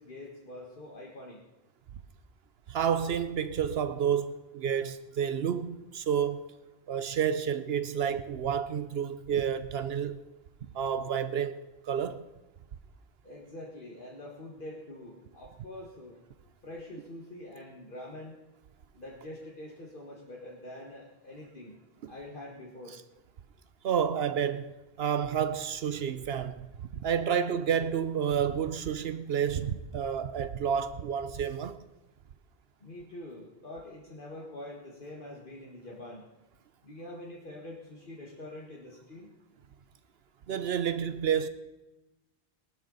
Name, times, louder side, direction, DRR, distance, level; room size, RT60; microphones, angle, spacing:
voice 1, 0.0-1.4 13.2-16.1 16.6-18.4 18.9-21.8 22.1-22.9 32.8-36.3 36.8-39.3, left 1 dB, 55° left, 1.9 m, -45 dB
voice 2, 2.7-6.4 6.9-10.2 10.7-11.6 11.8-12.2 22.0-22.1 23.8-31.8 40.5-41.5, right 8 dB, 75° right, 0.9 m, -30 dB
18.0 x 12.5 x 4.0 m
omnidirectional pair, 1.0 m